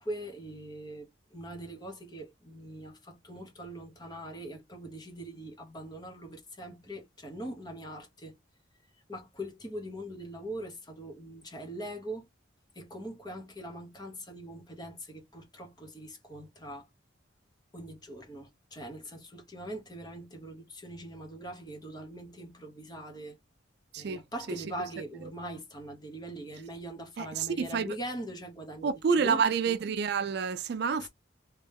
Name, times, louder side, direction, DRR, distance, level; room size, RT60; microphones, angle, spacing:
voice 1, 0.0-8.3 9.1-12.3 12.7-16.9 17.7-23.4 23.9-29.4 31.0-31.1, right 1 dB, 20° left, 1.1 m, -42 dB
voice 2, 27.2-27.9 28.8-31.1, right 6 dB, 55° right, 0.3 m, -28 dB
3.2 x 3.1 x 3.4 m
head